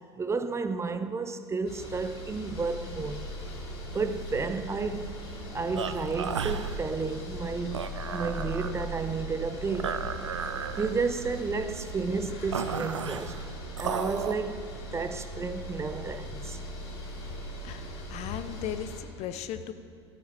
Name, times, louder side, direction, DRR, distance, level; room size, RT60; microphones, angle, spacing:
voice 1, 0.2-3.3 3.9-5.2 5.5-10.0 10.8-13.4 13.8-14.6 14.9-16.6, right 4 dB, 20° right, 0.7 m, -32 dB
sound 1, 1.7-19.0, equal, 65° left, 3.9 m, -40 dB
sound 2, 5.8-14.3, right 6 dB, 85° right, 0.5 m, -35 dB
voice 2, 17.6-19.7, left 10 dB, 45° left, 0.8 m, -36 dB
13.0 x 9.4 x 7.4 m
figure-of-eight pair, 75°, 15 cm